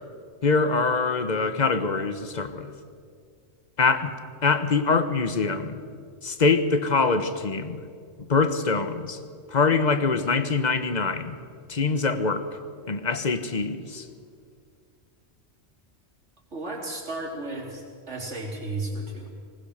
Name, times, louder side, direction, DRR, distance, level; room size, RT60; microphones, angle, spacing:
voice 1, 0.4-2.7 3.8-4.1 4.4-5.8 6.2-7.8 8.2-9.2 9.5-11.4 11.7-12.5 12.9-14.1, left 4 dB, 40° left, 11 dB, 1.1 m, -24 dB
voice 2, 16.5-19.3, right 2 dB, 80° right, -1 dB, 3.9 m, -34 dB
20.0 x 19.5 x 6.7 m, 2.2 s
omnidirectional pair, 1.2 m